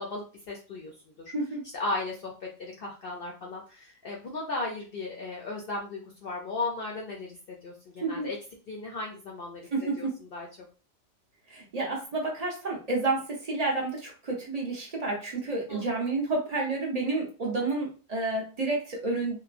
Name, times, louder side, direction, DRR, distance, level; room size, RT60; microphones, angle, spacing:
voice 1, 0.0-1.3 1.7-8.4 8.7-9.7 10.0-10.5 15.7-15.8, left 2 dB, 65° left, -1 dB, 0.5 m, -36 dB
voice 2, 1.3-1.6 8.0-8.3 9.7-10.2 11.5-19.4, right 3 dB, 45° right, -1 dB, 0.5 m, -30 dB
2.9 x 2.1 x 2.4 m, 0.35 s
omnidirectional pair, 1.4 m